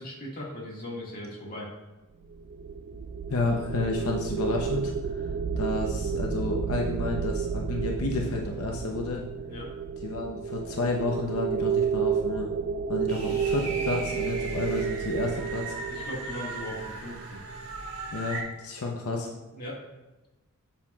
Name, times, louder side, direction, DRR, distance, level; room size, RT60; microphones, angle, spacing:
voice 1, 0.0-1.7 9.5-9.7 13.1-13.4 15.9-17.4 19.5-19.8, left 1 dB, 40° left, -4 dB, 1.9 m, -39 dB
sound 1, 2.2-17.4, right 7 dB, 45° right, 0.4 m, -31 dB
voice 2, 3.3-5.3 5.6-9.2 10.0-12.5 12.9-15.8 18.1-19.3, left 2 dB, 85° left, 0 dB, 0.8 m, -31 dB
sound 2, 13.1-18.4, right 2 dB, 80° right, 1.4 m, -38 dB
7.2 x 7.2 x 2.4 m, 1.1 s
head